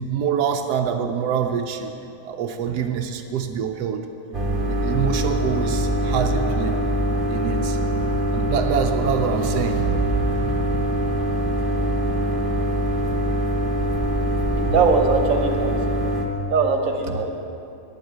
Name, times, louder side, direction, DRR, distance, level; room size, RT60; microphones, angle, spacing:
voice 1, 0.0-1.9 2.2-4.1 4.6-6.8 7.3-7.8 8.3-9.8, right 7 dB, 90° right, 5 dB, 1.2 m, -25 dB
sound 1, 4.3-16.3, right 1 dB, 35° right, 1.3 m, -23 dB
voice 2, 14.7-15.8 16.5-17.3, right 4 dB, 60° right, 3 dB, 1.4 m, -20 dB
9.7 x 7.9 x 8.8 m, 2.7 s
omnidirectional pair, 1.7 m